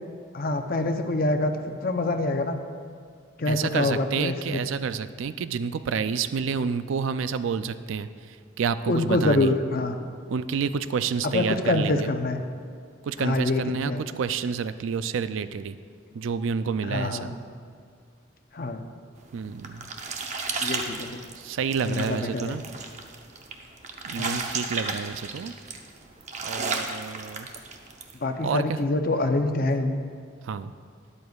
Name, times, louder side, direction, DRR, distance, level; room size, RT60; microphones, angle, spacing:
voice 1, 0.3-2.6 3.4-4.6 8.9-10.0 11.2-12.4 13.2-14.0 16.9-17.3 18.5-18.8 20.6-21.2 21.9-22.6 24.2-24.4 28.2-30.0, left 2 dB, 45° left, 6 dB, 0.6 m, -26 dB
voice 2, 3.5-8.1 8.6-9.5 10.3-12.1 13.0-15.8 16.1-17.3 19.3-19.9 21.4-22.6 24.0-25.5 26.4-27.5 28.4-28.8 30.4-30.7, right 6 dB, 75° right, 12 dB, 0.4 m, -29 dB
sound 1, 19.2-28.1, right 4 dB, 35° right, 0.7 m, -34 dB
12.5 x 11.0 x 2.4 m, 2.2 s
head